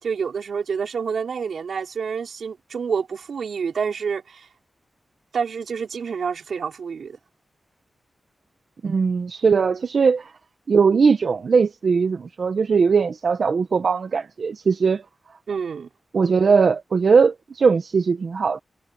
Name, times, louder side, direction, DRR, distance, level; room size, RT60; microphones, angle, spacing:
voice 1, 0.0-4.5 5.3-7.2 15.5-15.9, right 6 dB, 85° right, 4.6 m, -28 dB
voice 2, 8.8-10.3 10.7-15.0 16.1-18.6, right 5 dB, 65° right, 0.8 m, -19 dB
wide cardioid pair, 105°, 0 cm